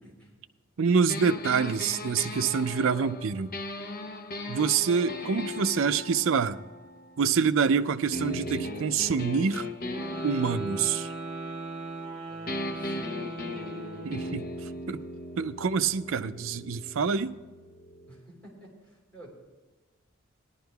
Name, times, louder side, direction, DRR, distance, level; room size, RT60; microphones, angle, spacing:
voice 1, 0.0-0.4 2.7-2.8 12.3-13.2 18.1-19.3, right 1 dB, 5° left, 3.5 m, -50 dB
voice 2, 0.8-3.5 4.5-6.6 7.2-9.7 10.2-11.1 14.0-14.5 14.9-15.0 15.4-17.4, right 6 dB, 70° right, 0.5 m, -26 dB
sound 1, 1.1-7.6 8.1-12.1 12.5-18.2, left 1 dB, 45° left, 0.8 m, -38 dB
sound 2, 9.9-14.4, right 3 dB, 30° right, 1.3 m, -39 dB
19.0 x 11.5 x 2.3 m
head